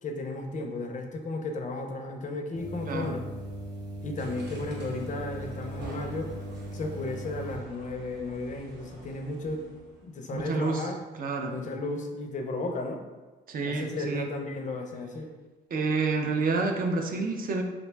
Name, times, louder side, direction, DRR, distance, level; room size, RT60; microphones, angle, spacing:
voice 1, 0.0-3.3 4.0-6.3 6.7-9.7 10.0-11.0 11.5-13.0 13.6-15.3, left 2 dB, 40° left, 4 dB, 0.4 m, -34 dB
sound 1, 2.5-7.6, right 1 dB, 20° right, 0.8 m, -39 dB
voice 2, 2.8-3.2 10.3-10.8 11.2-11.5 13.5-14.3 15.7-17.6, right 3 dB, 45° right, 4 dB, 0.4 m, -28 dB
sound 2, 4.2-10.2, right 2 dB, 65° right, 0.8 m, -47 dB
2.4 x 2.1 x 3.2 m, 1.3 s
cardioid pair, 90°, 20 cm